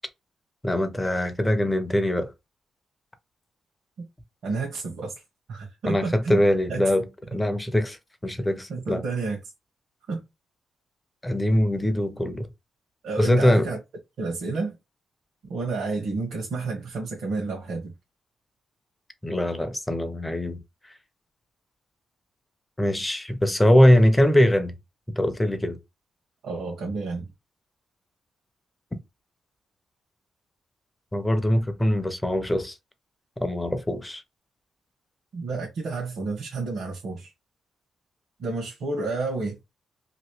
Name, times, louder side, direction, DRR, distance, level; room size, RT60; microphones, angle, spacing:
voice 1, 0.6-2.3 5.9-8.0 8.2-9.0 11.2-12.5 13.2-13.7 19.2-20.6 22.8-24.8 25.1-25.8 31.1-32.8 33.4-34.2, equal, 10° left, 0.5 m, -22 dB
voice 2, 4.4-5.1 5.5-6.4 6.7-6.8 8.7-9.4 10.1-10.2 13.0-13.8 14.2-14.8 15.5-17.9 26.4-27.3 35.3-37.3 38.4-39.6, right 3 dB, 70° right, 1.1 m, -30 dB
2.9 x 2.6 x 3.0 m
wide cardioid pair, 160°, 0 cm